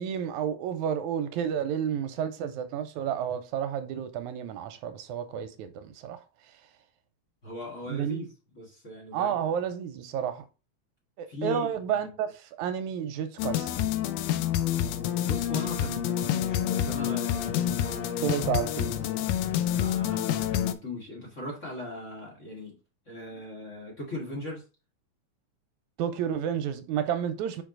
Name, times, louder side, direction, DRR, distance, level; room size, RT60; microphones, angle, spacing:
voice 1, 0.0-6.2 7.9-8.2 9.1-10.4 11.2-13.7 18.2-18.9 26.0-27.6, right 8 dB, 85° right, 2.0 m, -31 dB
voice 2, 7.4-8.3 8.5-9.4 11.3-12.1 15.2-18.2 19.7-22.8 23.1-24.6, left 1 dB, 30° left, 1.7 m, -39 dB
sound 1, 13.4-20.7, left 11 dB, 80° left, 1.5 m, -28 dB
5.4 x 4.9 x 3.8 m
omnidirectional pair, 3.5 m